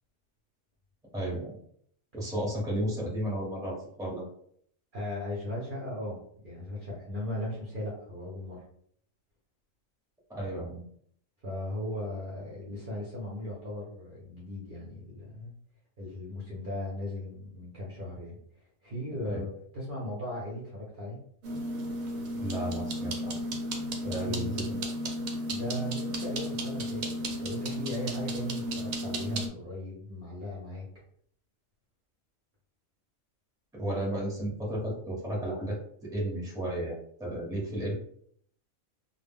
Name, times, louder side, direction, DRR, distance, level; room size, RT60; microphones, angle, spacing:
voice 1, 1.1-1.5 2.1-4.2 10.3-10.8 19.2-19.4 22.3-23.3 24.0-24.8 33.7-37.9, right 1 dB, 5° right, -4 dB, 0.6 m, -33 dB
voice 2, 4.9-8.6 11.4-15.5 16.0-18.4 18.8-21.2 24.0-24.8 25.5-30.8, left 1 dB, 50° right, -5 dB, 0.7 m, -37 dB
sound 1, 21.4-29.5, equal, 80° right, 1.0 m, -34 dB
2.2 x 2.1 x 3.5 m, 0.64 s
omnidirectional pair, 1.4 m